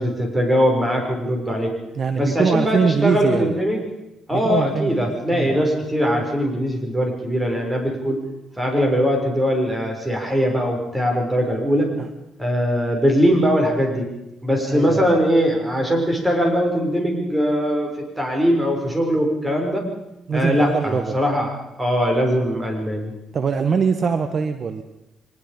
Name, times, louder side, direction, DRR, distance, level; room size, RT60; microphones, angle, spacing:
voice 1, 0.0-1.7 2.1-3.8 4.3-8.2 8.6-11.9 12.4-14.0 14.4-17.9 18.2-19.9 20.3-21.5 21.8-23.1, equal, 10° right, 1 dB, 6.6 m, -21 dB
voice 2, 2.0-3.5 4.3-5.5 12.0-12.1 14.7-15.1 20.3-21.2 23.3-24.8, right 5 dB, 50° right, 9 dB, 1.3 m, -22 dB
24.0 x 20.5 x 5.4 m, 0.90 s
cardioid pair, 90°, 0 cm